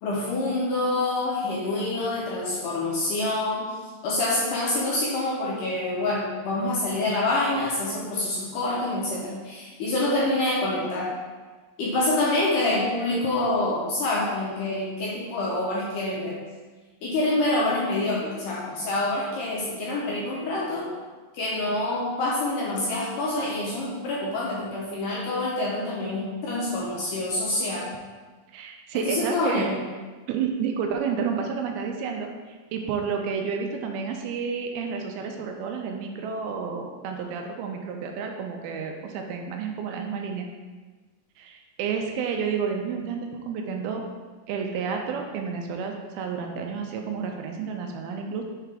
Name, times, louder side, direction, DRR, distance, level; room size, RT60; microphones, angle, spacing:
voice 1, 0.0-3.7 4.0-11.1 11.8-16.4 17.0-20.9 21.3-27.9 28.9-29.8, left 2 dB, 75° left, -5 dB, 2.1 m, -26 dB
voice 2, 28.5-29.7 30.3-40.5 41.4-44.0 44.5-48.4, right 6 dB, 80° right, 3 dB, 2.4 m, -30 dB
5.9 x 4.7 x 3.4 m, 1.3 s
omnidirectional pair, 4.5 m